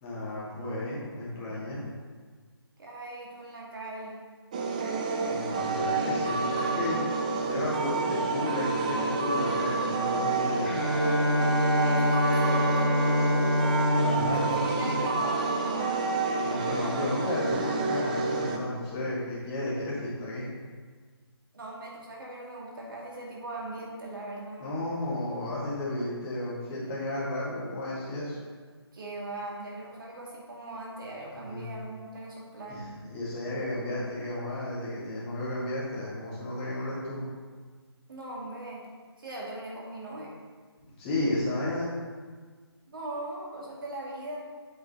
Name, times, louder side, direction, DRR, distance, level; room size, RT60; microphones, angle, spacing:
voice 1, 0.0-1.8 5.2-7.0 7.4-10.8 14.0-15.1 16.4-20.5 24.6-28.4 31.3-31.7 32.7-37.2 41.0-42.0, left 1 dB, 20° left, -7 dB, 1.9 m, -33 dB
voice 2, 2.8-4.2 11.7-13.0 14.2-16.0 21.5-24.6 28.9-32.9 38.1-38.9 39.2-40.3 42.9-44.5, right 2 dB, 55° right, -3 dB, 2.0 m, -40 dB
sound 1, 4.5-18.6, right 3 dB, 20° right, 0.4 m, -29 dB
Bowed string instrument, 10.6-15.9, left 1 dB, 35° left, 1.5 m, -26 dB
7.7 x 4.8 x 4.1 m, 1.5 s
figure-of-eight pair, 155°, 14 cm